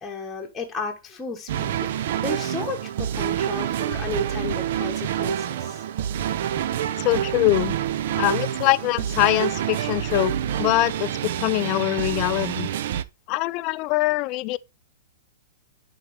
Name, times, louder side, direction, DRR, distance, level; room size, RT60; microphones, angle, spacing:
voice 1, 0.0-5.8, left 4 dB, 10° left, 1.1 m, -34 dB
sound 1, 1.5-13.0, right 10 dB, 60° right, 0.5 m, -27 dB
voice 2, 7.0-7.8 8.2-12.7 13.3-14.6, left 20 dB, 35° left, 0.4 m, -23 dB
10.5 x 4.2 x 3.3 m
hypercardioid pair, 150°, 0 cm